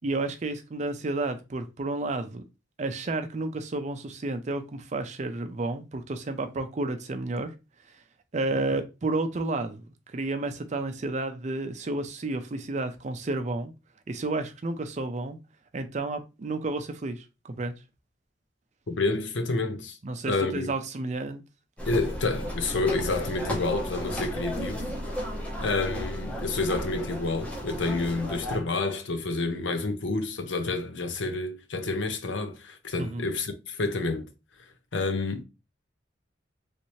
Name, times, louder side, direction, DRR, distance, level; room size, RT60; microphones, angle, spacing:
voice 1, 0.0-2.4 2.8-7.5 8.3-13.7 14.1-15.4 15.7-17.7 20.0-21.4 33.0-33.3, right 2 dB, 40° right, 0.4 m, -31 dB
voice 2, 18.9-20.0 20.3-20.7 21.8-24.8 25.6-34.3 34.9-35.4, left 3 dB, 80° left, 0.7 m, -29 dB
sound 1, 21.8-28.6, equal, 5° left, 0.8 m, -34 dB
3.2 x 2.7 x 3.0 m
head